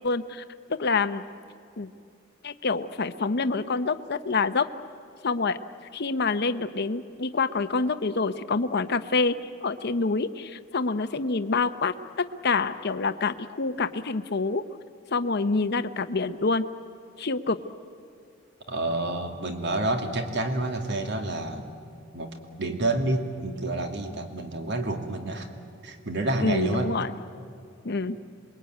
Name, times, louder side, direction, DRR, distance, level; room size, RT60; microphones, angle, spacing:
voice 1, 0.0-0.4 0.8-1.2 1.8-1.9 2.4-4.7 5.2-5.6 5.9-14.6 15.1-16.7 17.2-17.6 26.4-27.1 27.8-28.2, left 4 dB, 55° left, 11 dB, 0.8 m, -27 dB
voice 2, 18.7-21.7 22.1-25.5 25.8-26.9, right 2 dB, 60° right, 4 dB, 2.5 m, -29 dB
27.0 x 22.0 x 9.3 m, 2.4 s
head